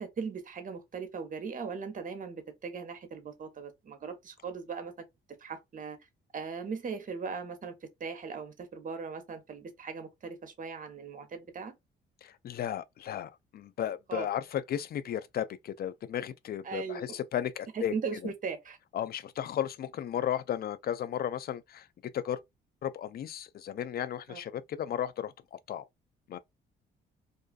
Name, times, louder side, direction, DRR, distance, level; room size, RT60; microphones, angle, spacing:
voice 1, 0.0-4.9 5.4-6.0 6.3-11.7 14.1-14.3 16.6-17.0 17.7-18.8 24.3-24.4, right 5 dB, 40° right, 0.8 m, -39 dB
voice 2, 12.2-17.9 18.9-21.9 22.1-22.4 22.8-25.9 26.3-26.4, left 10 dB, 50° left, 0.4 m, -34 dB
2.5 x 2.3 x 2.3 m
cardioid pair, 90°, 20 cm